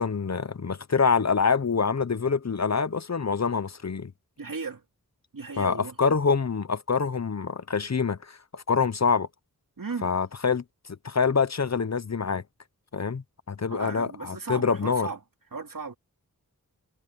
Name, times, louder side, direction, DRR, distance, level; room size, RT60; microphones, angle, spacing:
voice 1, 0.0-4.1 5.6-9.3 10.0-10.6 11.0-12.4 12.9-15.1, left 5 dB, 45° left, 0.9 m, -26 dB
voice 2, 4.4-4.8 5.3-6.0 9.8-10.1 13.7-15.2 15.5-15.9, right 4 dB, 65° right, 2.7 m, -36 dB
wide cardioid pair, 50°, 36 cm